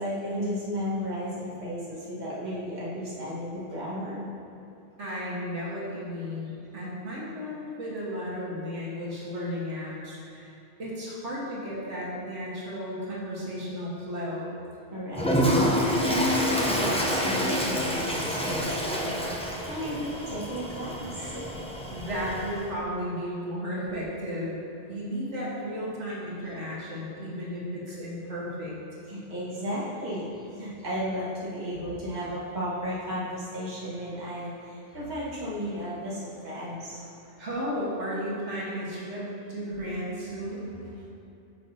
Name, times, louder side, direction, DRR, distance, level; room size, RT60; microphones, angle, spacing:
voice 1, 0.0-4.3 14.9-15.4 15.8-19.2 19.6-21.5 29.1-37.1, equal, 40° right, -8 dB, 1.6 m, -34 dB
voice 2, 5.0-14.5 21.9-24.6 24.9-28.7 37.4-40.7, equal, 85° right, -7 dB, 1.8 m, -34 dB
Toilet flush, 15.1-22.7, equal, 10° left, 0.4 m, -27 dB
9.2 x 6.3 x 2.7 m, 2.9 s
omnidirectional pair, 1.2 m